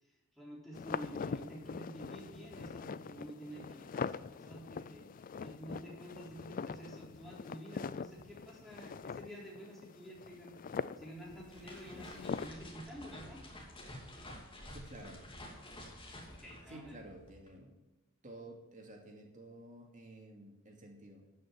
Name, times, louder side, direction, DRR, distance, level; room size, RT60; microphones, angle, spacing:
voice 1, 0.3-5.1 5.4-13.4 16.3-17.0, right 1 dB, ahead, -4 dB, 3.8 m, -50 dB
sound 1, 0.7-12.5, left 6 dB, 40° left, 0.3 m, -43 dB
sound 2, 11.2-17.5, left 1 dB, 25° left, 2.9 m, -50 dB
voice 2, 14.7-15.2 16.7-17.7 18.2-21.2, right 1 dB, 35° right, 1 dB, 2.6 m, -52 dB
13.0 x 6.3 x 9.0 m, 1.0 s
head